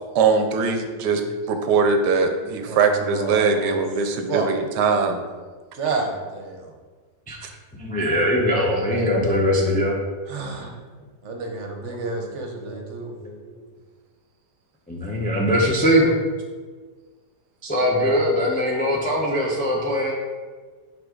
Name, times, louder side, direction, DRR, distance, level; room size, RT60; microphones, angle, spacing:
voice 1, 0.1-1.2 1.5-5.2, right 5 dB, 75° right, 6 dB, 1.2 m, -21 dB
voice 2, 2.7-4.5 4.7-5.3 5.7-6.8 10.3-10.8 11.2-13.1, right 3 dB, 50° right, 2 dB, 1.0 m, -30 dB
voice 3, 7.8-10.0 12.6-13.6 14.9-16.2 17.6-20.1, equal, 15° left, -2 dB, 0.3 m, -22 dB
6.0 x 5.4 x 3.8 m, 1.4 s
omnidirectional pair, 1.9 m